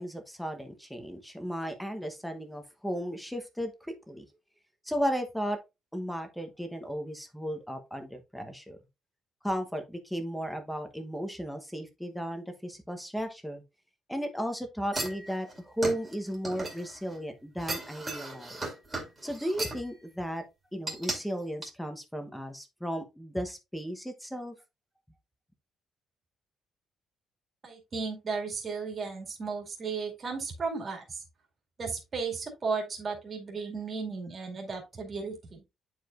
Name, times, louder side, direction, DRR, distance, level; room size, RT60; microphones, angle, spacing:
voice 1, 0.0-4.2 4.8-5.6 5.9-8.8 9.4-13.6 14.1-18.6 19.2-20.4 20.7-24.5, equal, ahead, 6 dB, 1.0 m, -35 dB
sound 1, 14.9-17.2 17.6-19.9 20.9-21.2 21.6-21.7, right 2 dB, 15° right, 2.2 m, -36 dB
voice 2, 27.6-31.2 31.8-35.6, right 4 dB, 30° right, 1 dB, 2.2 m, -35 dB
10.0 x 4.8 x 2.5 m, 0.24 s
cardioid pair, 160°, 0 cm